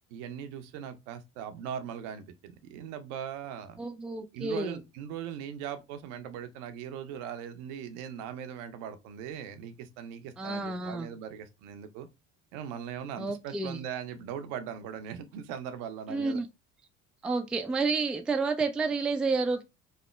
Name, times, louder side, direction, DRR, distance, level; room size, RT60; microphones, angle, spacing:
voice 1, 0.1-3.8 4.3-12.1 12.5-16.4, right 8 dB, 70° right, 0.6 m, -40 dB
voice 2, 3.8-4.8 10.4-11.1 13.2-13.8 16.1-16.5 17.2-19.6, right 3 dB, 5° right, 0.3 m, -30 dB
3.1 x 2.1 x 3.0 m
hypercardioid pair, 60°, 38 cm